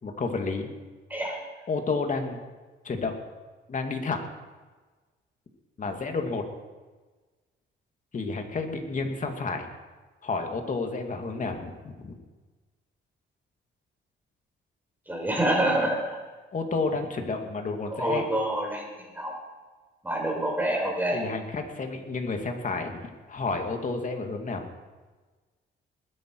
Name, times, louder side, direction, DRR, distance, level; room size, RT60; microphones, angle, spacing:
voice 1, 0.0-0.7 1.7-2.4 2.8-3.1 3.7-4.2 5.8-6.4 8.1-9.7 10.2-12.2 16.5-18.2 21.1-23.0 23.3-24.7, left 4 dB, 40° left, 4 dB, 2.4 m, -30 dB
voice 2, 1.1-1.4 15.1-16.0 17.9-19.3 20.0-21.2, right 1 dB, 10° right, 0 dB, 5.3 m, -27 dB
20.5 x 10.0 x 4.8 m, 1.3 s
cardioid pair, 90°, 20 cm